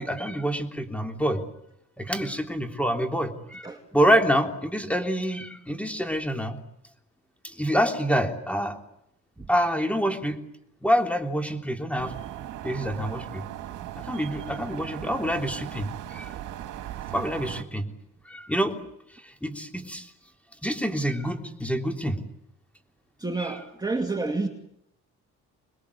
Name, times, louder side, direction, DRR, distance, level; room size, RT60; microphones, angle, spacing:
voice 1, 0.0-1.4 2.0-6.6 7.4-8.8 9.5-10.4 10.8-12.1 12.6-13.4 14.0-16.3 17.1-17.9 18.3-18.8 19.2-20.1 20.6-22.2 23.4-23.6, equal, 5° left, 4 dB, 3.5 m, -27 dB
sound 1, 12.0-17.6, right 12 dB, 80° right, 1.9 m, -38 dB
voice 2, 23.2-24.5, right 3 dB, 15° right, 4 dB, 2.6 m, -29 dB
26.5 x 21.5 x 8.5 m, 0.77 s
cardioid pair, 90°, 30 cm